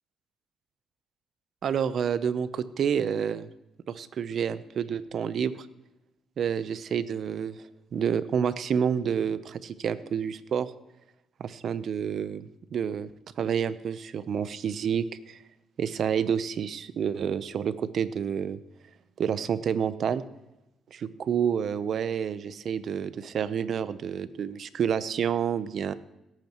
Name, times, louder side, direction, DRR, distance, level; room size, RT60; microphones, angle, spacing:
voice 1, 1.6-3.5 3.9-5.7 6.4-7.6 7.9-10.7 11.4-13.1 13.4-15.4 15.8-18.6 19.2-20.2 20.9-25.9, right 7 dB, 60° right, 14 dB, 0.7 m, -29 dB
17.5 x 8.9 x 3.0 m, 0.92 s
cardioid pair, 90°, 0 cm